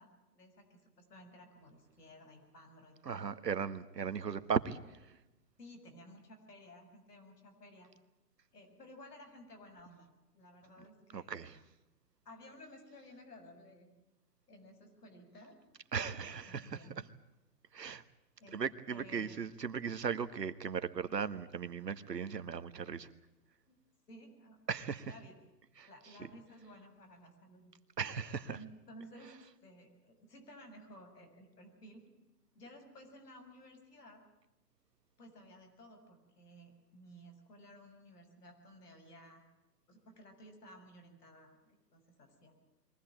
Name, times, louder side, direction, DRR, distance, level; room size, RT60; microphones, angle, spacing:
voice 1, 0.0-3.3 4.0-4.4 5.6-7.9 8.5-10.1 10.3-11.5 12.3-13.9 14.5-15.6 15.9-17.0 18.4-18.6 18.9-19.4 23.7-23.8 24.1-24.6 25.1-25.4 25.8-27.7 28.5-32.1 32.5-34.2 35.2-39.4 39.9-42.5, equal, 70° left, 5 dB, 7.0 m, -56 dB
voice 2, 3.0-4.8 11.1-11.6 15.9-16.7 17.7-18.0 18.5-23.1 24.7-25.1 25.8-25.9 28.0-28.6, right 6 dB, 90° right, 12 dB, 1.6 m, -37 dB
23.0 x 17.5 x 8.9 m, 0.97 s
hypercardioid pair, 160°, 48 cm